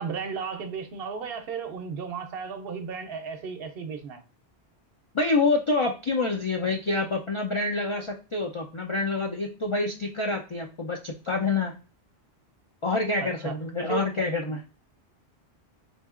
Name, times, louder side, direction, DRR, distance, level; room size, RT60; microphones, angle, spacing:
voice 1, 0.0-4.2 13.2-13.6 13.9-14.1 14.5-14.6, right 6 dB, 65° right, 0.8 m, -34 dB
voice 2, 5.1-11.8 12.8-14.6, left 3 dB, 55° left, 0.3 m, -27 dB
4.0 x 2.7 x 2.4 m
omnidirectional pair, 1.1 m